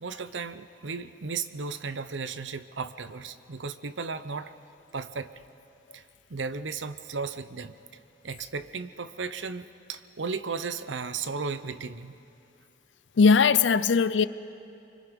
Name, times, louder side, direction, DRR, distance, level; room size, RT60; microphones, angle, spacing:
voice 1, 0.0-4.5 4.9-5.3 5.9-6.0 6.3-7.7 8.2-12.1, right 4 dB, 85° right, 0.8 m, -35 dB
voice 2, 13.2-14.3, left 5 dB, 85° left, 0.6 m, -19 dB
25.5 x 24.0 x 5.3 m
head